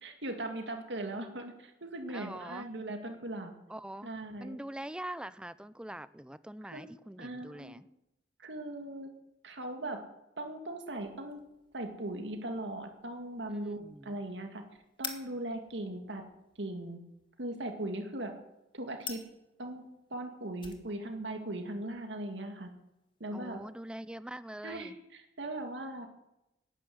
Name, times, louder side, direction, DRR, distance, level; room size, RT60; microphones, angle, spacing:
voice 1, 0.0-3.5 4.0-4.6 6.7-6.8 7.2-7.8 8.4-9.1 9.4-10.0 10.4-11.4 11.7-14.6 15.0-16.2 16.6-17.0 17.4-18.3 18.7-19.2 19.6-19.8 20.1-22.7 23.2-23.6 24.6-26.1, right 1 dB, 85° right, 4 dB, 2.2 m, -39 dB
voice 2, 2.1-2.7 3.7-4.1 4.4-7.9 13.5-14.2 23.3-25.0, right 1 dB, 5° right, 16 dB, 0.5 m, -43 dB
sound 1, 10.9-24.1, left 6 dB, 30° left, 2.0 m, -51 dB
13.0 x 10.5 x 9.4 m, 0.90 s
head